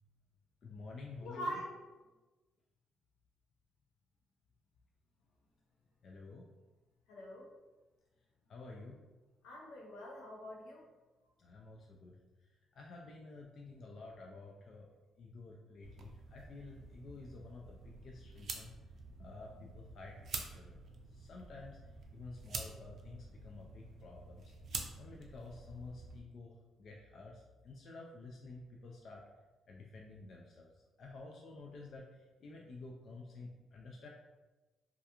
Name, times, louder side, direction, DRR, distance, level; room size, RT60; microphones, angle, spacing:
voice 1, 0.6-1.6 6.0-6.4 8.5-9.0 11.4-12.2 12.7-14.9 15.2-18.7 19.2-20.8 21.1-21.8 22.1-24.5 25.0-29.2 29.7-30.7 31.0-34.1, left 3 dB, 60° left, -1 dB, 0.3 m, -51 dB
voice 2, 1.2-1.7 7.1-7.5 9.4-10.9, equal, 90° left, -3 dB, 0.7 m, -43 dB
sound 1, 15.8-26.2, right 4 dB, 60° right, 0.4 m, -48 dB
2.3 x 2.2 x 2.8 m, 1.2 s
supercardioid pair, 70°, 0 cm